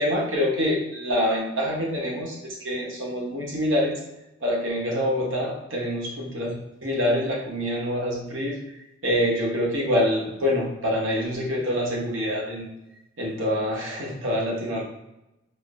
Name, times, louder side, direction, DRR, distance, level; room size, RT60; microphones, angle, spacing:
voice 1, 0.0-4.0 4.4-6.5 6.8-8.6 9.0-12.7 13.2-14.8, left 1 dB, 75° right, -2 dB, 1.0 m, -26 dB
5.0 x 2.0 x 2.5 m, 0.93 s
head